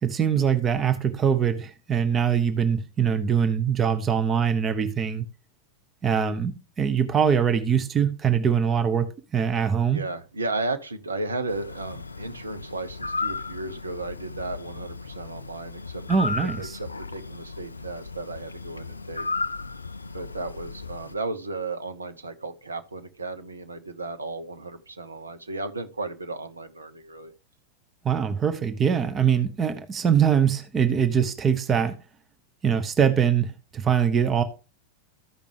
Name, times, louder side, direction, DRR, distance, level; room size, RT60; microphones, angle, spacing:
voice 1, 0.0-5.3 6.0-10.0 16.1-16.8 28.0-32.0 32.6-34.4, right 7 dB, 25° right, 0.7 m, -23 dB
voice 2, 9.9-16.0 16.6-19.3 20.1-27.3, right 2 dB, 75° right, 0.8 m, -34 dB
sound 1, 11.5-21.2, left 3 dB, 80° left, 0.3 m, -35 dB
14.0 x 5.1 x 3.3 m
figure-of-eight pair, 90°, 0 cm